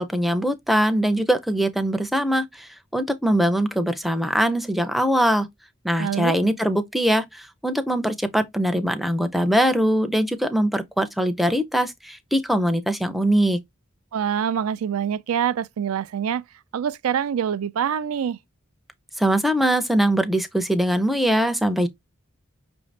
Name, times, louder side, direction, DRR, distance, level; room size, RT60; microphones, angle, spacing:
voice 1, 0.0-5.5 5.8-13.6 19.2-21.9, equal, ahead, 0.4 m, -22 dB
voice 2, 6.0-6.4 14.1-16.4 16.7-18.4, right 8 dB, 90° right, 0.4 m, -25 dB
5.6 x 2.6 x 3.2 m
head